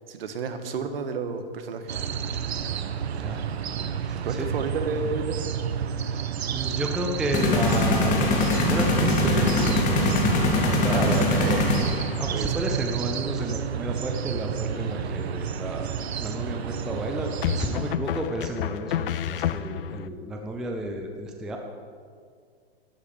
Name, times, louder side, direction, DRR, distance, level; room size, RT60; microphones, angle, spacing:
voice 1, 0.1-1.9 4.2-5.4 10.9-11.7 12.2-12.6, right 5 dB, 65° right, 8 dB, 1.7 m, -31 dB
sound 1, 1.9-17.9, right 8 dB, 85° right, 1.0 m, -30 dB
voice 2, 4.0-4.5 6.0-10.1 10.5-11.3 12.2-15.9 16.2-17.3 17.5-21.6, right 1 dB, ahead, 2 dB, 0.4 m, -32 dB
sound 2, 7.3-12.2, left 2 dB, 25° left, 2.2 m, -22 dB
sound 3, 14.8-15.4 17.4-20.1, left 11 dB, 60° left, 0.6 m, -30 dB
12.0 x 11.5 x 6.9 m, 2.1 s
hypercardioid pair, 155°, 31 cm